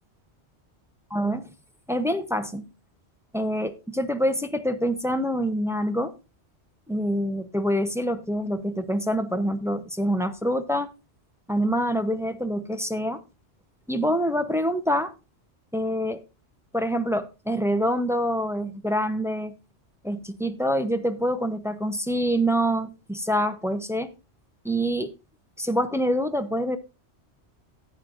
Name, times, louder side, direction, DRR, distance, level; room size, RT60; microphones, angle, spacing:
voice 1, 1.1-1.5 1.9-2.7 3.3-6.1 6.9-10.9 11.5-13.2 13.9-15.1 15.7-16.2 16.7-19.5 20.0-24.1 24.6-25.1 25.6-26.8, equal, 5° right, 0.7 m, -26 dB
13.5 x 9.0 x 2.6 m
omnidirectional pair, 1.2 m